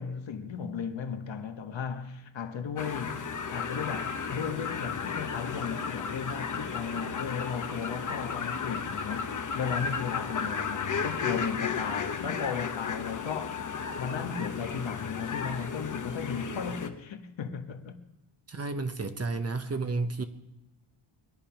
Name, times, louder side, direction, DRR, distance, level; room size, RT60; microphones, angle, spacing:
voice 1, 0.0-13.6 14.0-18.0, left 6 dB, 65° left, 1.4 m, -35 dB
sound 1, 2.8-16.9, left 6 dB, 40° left, 1.0 m, -34 dB
voice 2, 18.5-20.2, right 3 dB, 30° right, 0.9 m, -31 dB
22.5 x 10.5 x 5.8 m
wide cardioid pair, 175°, 50 cm